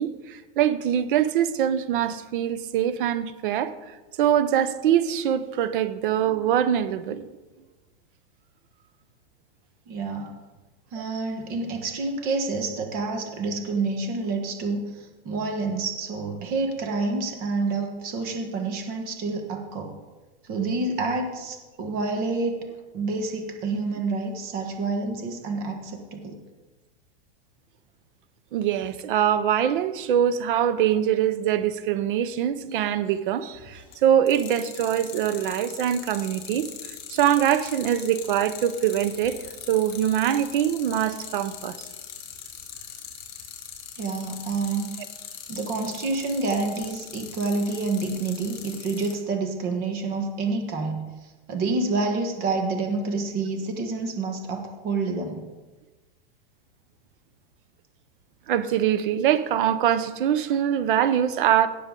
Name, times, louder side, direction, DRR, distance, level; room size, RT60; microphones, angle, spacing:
voice 1, 0.0-7.2 28.5-39.4 39.7-41.8 58.5-61.7, right 10 dB, 55° right, 0.8 m, -23 dB
voice 2, 9.9-10.4 10.9-14.9 15.2-19.9 20.5-22.7 22.9-26.4 44.0-45.0 45.5-51.1 51.5-55.5, right 3 dB, 30° right, 1.3 m, -28 dB
sound 1, 33.5-33.9 34.3-49.1, left 9 dB, 50° left, 3.1 m, -40 dB
17.5 x 6.8 x 3.8 m
supercardioid pair, 165°, 31 cm